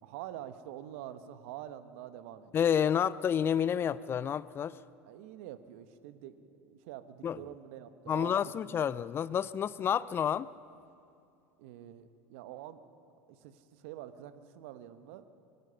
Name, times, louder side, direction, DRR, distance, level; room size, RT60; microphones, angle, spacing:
voice 1, 0.0-2.6 5.0-8.4 8.8-8.9 11.6-12.8 13.3-15.2, right 12 dB, 65° right, 1.2 m, -46 dB
voice 2, 2.5-4.8 7.2-7.4 8.1-10.5, left 8 dB, 30° left, 0.5 m, -29 dB
23.5 x 21.0 x 5.8 m
hypercardioid pair, 75°, 8 cm